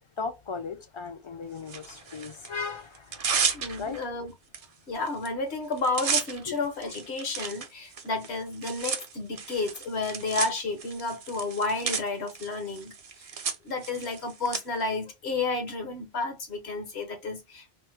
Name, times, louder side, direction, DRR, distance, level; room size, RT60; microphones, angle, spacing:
voice 1, 0.2-4.0 6.5-6.6, left 4 dB, 40° left, 0.4 m, -37 dB
Tearing, 1.7-2.5 2.9-4.0 4.5-4.7 4.9-5.3 5.5-14.6, right 5 dB, 45° right, 0.5 m, -33 dB
voice 2, 3.5-4.3 4.9-12.9 13.6-17.7, left 3 dB, 75° left, 1.3 m, -31 dB
3.5 x 2.0 x 2.8 m
omnidirectional pair, 1.1 m